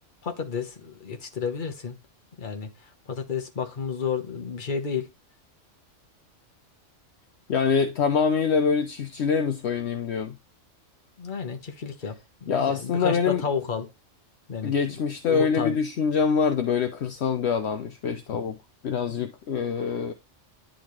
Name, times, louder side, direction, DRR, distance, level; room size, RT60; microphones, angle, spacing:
voice 1, 0.2-2.0 2.4-5.1 11.2-13.9 14.5-15.0 15.3-15.8, left 6 dB, 40° left, 1.2 m, -31 dB
voice 2, 7.5-10.4 12.5-13.4 14.6-18.6 18.8-20.1, left 6 dB, 65° left, 0.9 m, -25 dB
10.5 x 3.9 x 3.2 m
omnidirectional pair, 1.3 m